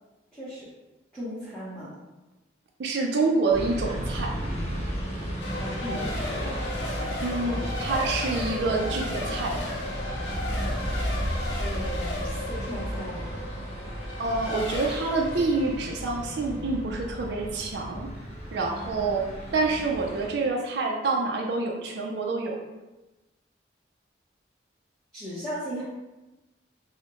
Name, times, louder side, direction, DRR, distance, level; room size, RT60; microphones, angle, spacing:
voice 1, 0.3-0.7 1.1-1.9 5.6-6.6 6.9-8.0 11.2-13.3 25.1-25.8, equal, 5° left, -12 dB, 0.7 m, -37 dB
voice 2, 2.8-4.3 7.2-9.5 14.2-18.1 18.5-19.2 19.5-22.6, right 3 dB, 65° right, 0 dB, 0.4 m, -27 dB
sound 1, 3.5-20.3, equal, 35° left, 0.9 m, -34 dB
Race car auto racing / Accelerating revving vroom / Mechanisms, 5.4-17.9, left 1 dB, 75° left, 0.6 m, -36 dB
4.8 x 2.0 x 2.9 m, 1.1 s
head